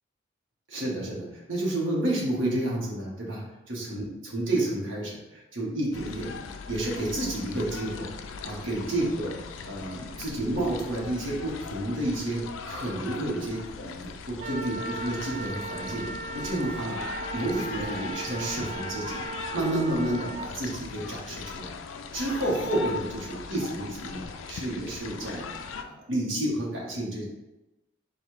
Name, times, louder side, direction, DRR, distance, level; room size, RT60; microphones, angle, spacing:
voice 1, 0.7-8.1 8.4-9.4 9.6-17.0 17.3-19.2 19.5-21.8 22.1-25.5 25.8-27.3, right 1 dB, 80° right, -4 dB, 1.2 m, -30 dB
sound 1, 5.9-25.8, left 5 dB, 85° left, 0.4 m, -39 dB
Wind instrument woodwind instrument, 14.4-20.5, right 3 dB, 35° right, 0.4 m, -37 dB
4.1 x 2.4 x 4.6 m, 1.0 s
head